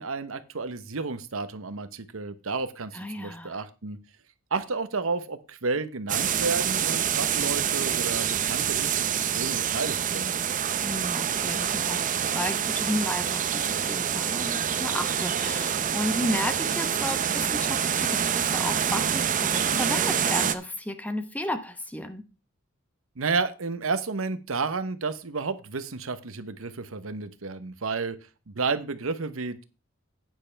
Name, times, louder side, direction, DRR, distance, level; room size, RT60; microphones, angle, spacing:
voice 1, 0.0-4.0 4.5-8.9 9.2-10.3 23.2-28.2 28.5-29.6, right 4 dB, 80° right, 13 dB, 0.9 m, -31 dB
voice 2, 2.9-3.6 10.8-22.2, left 1 dB, 5° left, 9 dB, 0.9 m, -33 dB
sound 1, 6.1-20.6, right 8 dB, 40° right, 0.6 m, -26 dB
10.0 x 9.2 x 3.3 m, 0.29 s
head